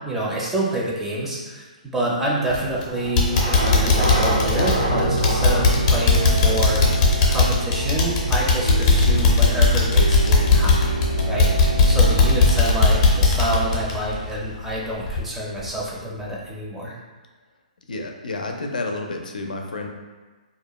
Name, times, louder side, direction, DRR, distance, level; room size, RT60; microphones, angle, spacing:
voice 1, 0.1-1.6 1.9-11.0 11.3-17.0, right 1 dB, 5° right, -5 dB, 0.5 m, -27 dB
sound 1, 2.5-2.8 3.2-14.7 15.1-15.2 15.7-15.8, left 4 dB, 40° left, 0.6 m, -18 dB
sound 2, 2.5-11.2, right 1 dB, 65° right, 0.6 m, -29 dB
sound 3, 3.6-13.7, right 2 dB, 85° right, 1.2 m, -27 dB
voice 2, 17.9-19.9, left 2 dB, 90° left, 2 dB, 0.4 m, -30 dB
2.3 x 2.1 x 2.9 m, 1.3 s
hypercardioid pair, 145°, 4 cm